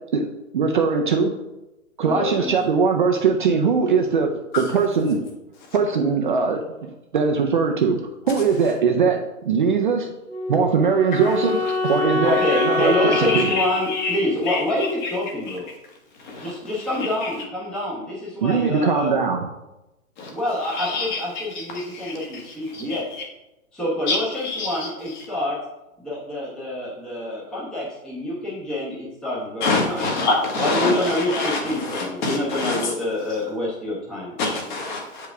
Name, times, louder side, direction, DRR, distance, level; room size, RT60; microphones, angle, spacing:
voice 1, 0.5-1.3 2.0-5.2 5.7-8.0 8.3-10.1 10.5-13.5 18.4-19.5, right 5 dB, 40° right, 3 dB, 0.5 m, -21 dB
voice 2, 2.0-2.5 12.2-15.7 16.4-19.1 20.3-23.0 23.7-25.6 26.0-30.0 30.6-34.4, left 1 dB, ahead, -8 dB, 0.9 m, -27 dB
Wind instrument woodwind instrument, 10.3-15.3, left 3 dB, 50° left, 1.5 m, -26 dB
voice 3, 12.3-14.2 14.4-15.1 15.5-15.6 16.2-16.5 16.8-17.3 20.2-20.3 20.7-23.0 24.1-25.3 29.6-32.9 33.3-33.4 34.4-35.3, left 3 dB, 35° left, 0 dB, 1.5 m, -27 dB
8.0 x 4.8 x 3.4 m, 0.96 s
hypercardioid pair, 160°, 41 cm